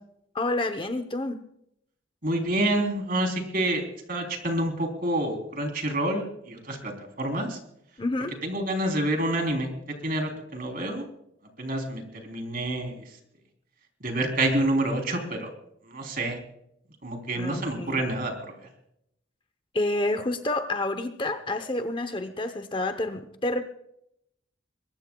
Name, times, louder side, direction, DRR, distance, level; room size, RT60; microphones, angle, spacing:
voice 1, 0.3-1.4 8.0-8.4 17.3-18.1 19.7-23.6, left 2 dB, 25° left, 9 dB, 0.8 m, -29 dB
voice 2, 2.2-3.8 4.1-7.6 8.4-9.7 10.0-11.1 11.6-13.1 14.0-15.5 15.9-16.4 17.0-18.6, right 1 dB, 45° right, 3 dB, 3.5 m, -28 dB
22.5 x 20.0 x 2.3 m, 0.76 s
head